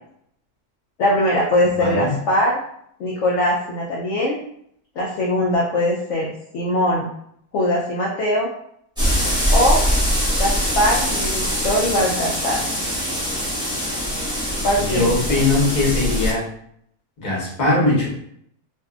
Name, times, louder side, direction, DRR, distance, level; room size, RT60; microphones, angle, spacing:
voice 1, 1.0-2.6 3.0-4.4 5.0-6.3 6.5-7.1 7.5-8.5 9.5-9.8 10.4-12.6 14.6-15.1, left 1 dB, 65° left, -3 dB, 0.8 m, -21 dB
voice 2, 1.8-2.1 14.8-16.4 17.2-18.1, left 2 dB, 35° left, -6 dB, 0.9 m, -20 dB
sound 1, 9.0-16.3, equal, 5° right, 0.8 m, -22 dB
2.5 x 2.5 x 2.4 m, 0.69 s
omnidirectional pair, 1.6 m